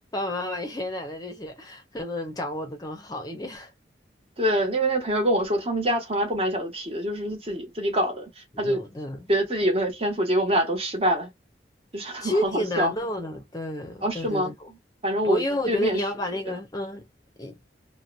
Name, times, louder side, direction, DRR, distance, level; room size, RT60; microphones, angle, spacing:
voice 1, 0.1-3.7 8.5-9.3 12.2-14.7 15.2-17.0 17.4-17.6, left 1 dB, 20° left, 0.6 m, -30 dB
voice 2, 4.4-8.8 9.3-11.3 11.9-12.9 14.0-14.5 15.0-15.4 15.7-16.0, equal, 30° right, 1.0 m, -25 dB
2.8 x 2.1 x 2.4 m
head